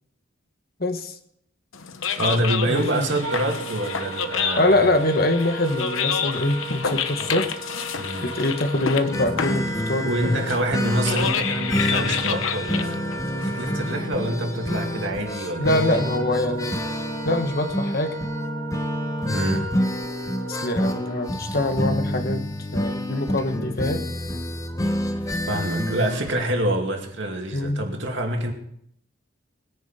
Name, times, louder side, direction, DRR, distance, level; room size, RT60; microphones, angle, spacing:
voice 1, 0.8-1.1 2.7-3.1 4.6-7.5 8.2-10.6 11.0-11.2 15.6-16.8 17.2-18.2 20.5-24.0 27.5-27.8, left 1 dB, 45° left, 7 dB, 1.3 m, -24 dB
sound 1, 1.7-14.0, left 7 dB, 75° left, 1.0 m, -29 dB
voice 2, 2.2-4.9 7.1-7.4 7.9-8.3 10.0-13.0 13.4-16.0 19.3-19.7 25.5-28.5, right 1 dB, 60° right, 3 dB, 2.4 m, -26 dB
Wind instrument woodwind instrument, 3.2-21.3, right 5 dB, 75° right, 1.3 m, -37 dB
sound 2, 9.1-26.3, left 1 dB, 15° left, 0.9 m, -28 dB
20.5 x 10.5 x 4.3 m, 0.71 s
head